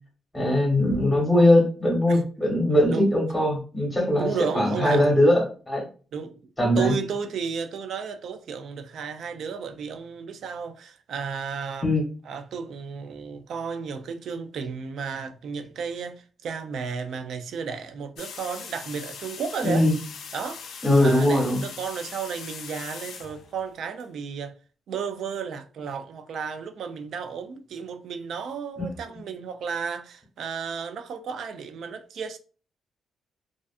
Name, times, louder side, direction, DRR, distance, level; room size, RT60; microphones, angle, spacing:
voice 1, 0.3-5.8 6.6-7.0 11.8-12.0 19.6-19.9 20.8-21.6 28.8-28.9, left 1 dB, 5° left, 0.9 m, -21 dB
voice 2, 4.2-5.1 6.1-6.4 6.8-11.9 12.3-19.9 20.3-20.7 21.0-24.5 24.9-32.4, right 6 dB, 70° right, 0.3 m, -33 dB
sound 1, 18.2-24.0, left 6 dB, 75° left, 0.4 m, -40 dB
2.5 x 2.3 x 2.4 m
wide cardioid pair, 155°, 0 cm